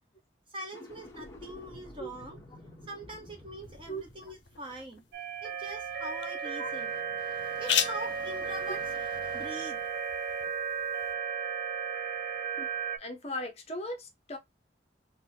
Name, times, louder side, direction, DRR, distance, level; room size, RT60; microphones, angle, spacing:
voice 1, 0.5-2.4 2.9-5.0 5.4-9.9, right 1 dB, 30° right, 1.2 m, -43 dB
sound 1, 0.6-5.9, left 1 dB, 15° left, 1.0 m, -51 dB
sound 2, 3.6-11.1, left 10 dB, 75° left, 0.5 m, -38 dB
sound 3, 5.1-13.0, right 6 dB, 55° right, 0.6 m, -34 dB
voice 2, 13.0-14.4, equal, 35° left, 0.7 m, -38 dB
4.0 x 2.2 x 2.8 m
head